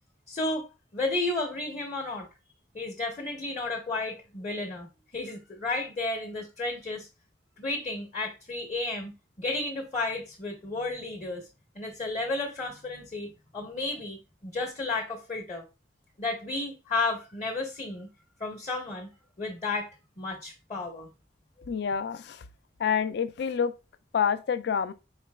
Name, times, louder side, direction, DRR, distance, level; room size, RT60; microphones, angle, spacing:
voice 1, 0.3-2.3 2.7-4.9 5.1-7.1 7.6-11.5 11.7-15.6 16.2-18.1 18.4-19.1 19.4-19.9 20.2-21.1, left 2 dB, 35° left, 0.8 m, -32 dB
voice 2, 21.7-22.4 22.8-23.7 24.1-24.9, left 7 dB, 60° left, 0.4 m, -27 dB
4.0 x 4.0 x 2.2 m
head